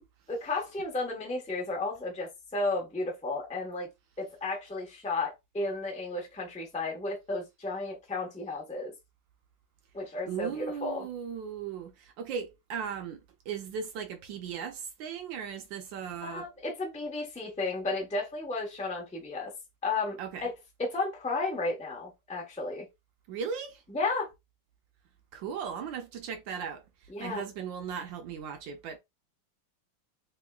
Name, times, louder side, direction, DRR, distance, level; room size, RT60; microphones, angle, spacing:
voice 1, 0.3-3.9 4.2-8.9 9.9-11.1 16.2-19.5 19.8-20.5 20.8-22.9 23.9-24.3 27.1-27.4, left 3 dB, 10° left, 0.4 m, -33 dB
voice 2, 10.3-13.2 13.5-16.5 20.2-20.4 23.3-23.8 25.3-26.8 27.2-29.0, right 7 dB, 75° right, 1.2 m, -37 dB
3.5 x 3.5 x 2.3 m
omnidirectional pair, 2.3 m